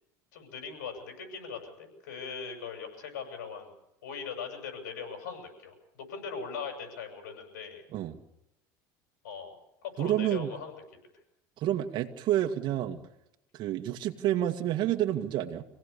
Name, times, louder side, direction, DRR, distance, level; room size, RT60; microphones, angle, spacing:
voice 1, 0.3-3.7 4.0-7.8 9.2-9.6 10.0-10.7, left 6 dB, 90° left, 4 dB, 7.1 m, -40 dB
voice 2, 10.0-10.5 11.6-13.0 13.5-15.6, right 12 dB, 55° right, 4 dB, 2.0 m, -29 dB
26.5 x 17.0 x 7.0 m, 0.85 s
supercardioid pair, 105°, 10 cm